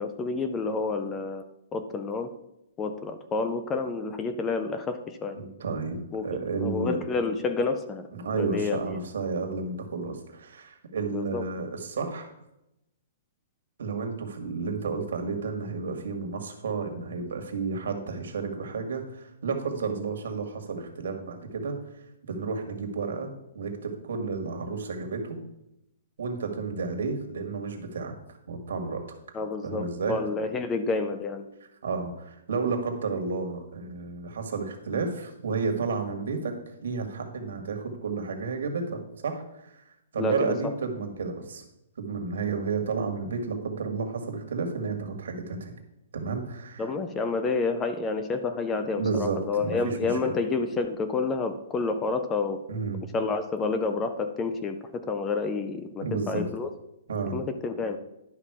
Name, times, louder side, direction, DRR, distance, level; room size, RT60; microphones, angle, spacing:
voice 1, 0.0-1.4 1.7-2.3 2.8-5.4 6.1-6.3 6.6-8.1 8.4-8.8 11.1-11.4 29.3-31.5 40.2-40.7 46.8-52.6 53.1-56.7 57.3-58.0, left 4 dB, 10° left, 9 dB, 0.5 m, -29 dB
voice 2, 5.3-7.0 8.1-12.3 13.8-21.8 22.3-25.4 26.2-28.1 28.5-29.0 29.6-30.1 31.8-36.5 36.8-39.8 40.1-41.6 42.0-45.7 46.1-46.9 49.0-50.1 52.7-53.0 56.0-56.4 57.1-57.4, right 4 dB, 70° right, 4 dB, 1.8 m, -31 dB
11.0 x 5.6 x 4.8 m, 0.88 s
hypercardioid pair, 170°, 0 cm